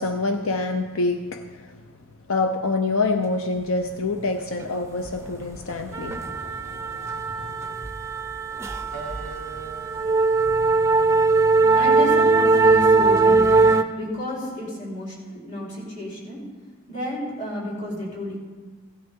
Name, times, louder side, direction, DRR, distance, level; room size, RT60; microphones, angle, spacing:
voice 1, 0.0-1.8 2.3-7.7 11.8-11.9, left 3 dB, 80° left, 6 dB, 0.6 m, -27 dB
sound 1, 5.1-5.3 5.5-13.8, right 3 dB, 15° right, 0.5 m, -20 dB
sound 2, 8.9-14.0, right 2 dB, 60° left, 3.3 m, -43 dB
voice 2, 11.7-13.6 13.9-16.4 16.9-18.4, left 1 dB, 35° left, -5 dB, 3.9 m, -31 dB
16.5 x 11.5 x 3.7 m, 1.4 s
head